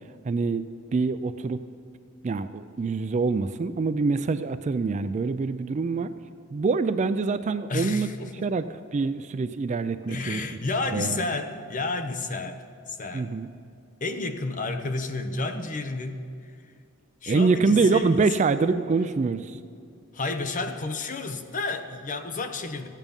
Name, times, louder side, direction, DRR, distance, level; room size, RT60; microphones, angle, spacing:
voice 1, 0.2-0.6 0.9-1.6 2.2-6.1 6.5-8.1 8.4-8.6 8.9-10.4 10.9-11.2 13.1-13.5 17.3-19.6, right 4 dB, 35° right, 12 dB, 0.3 m, -25 dB
voice 2, 7.7-8.5 10.1-13.3 14.0-16.2 17.2-18.5 20.1-22.9, left 3 dB, 35° left, 7 dB, 0.7 m, -31 dB
14.5 x 9.2 x 5.3 m, 2.3 s
head